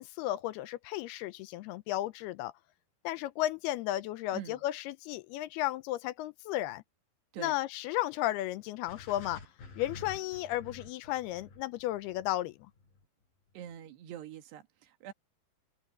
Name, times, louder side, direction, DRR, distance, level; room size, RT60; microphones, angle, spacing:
voice 1, 0.0-2.5 3.0-6.8 7.4-9.4 9.8-12.5, left 15 dB, 80° left, 2.5 m, -34 dB
sound 1, 8.9-13.0, left 4 dB, 55° left, 9.9 m, -49 dB
voice 2, 13.5-15.1, right 11 dB, 80° right, 4.0 m, -44 dB
omnidirectional pair, 4.8 m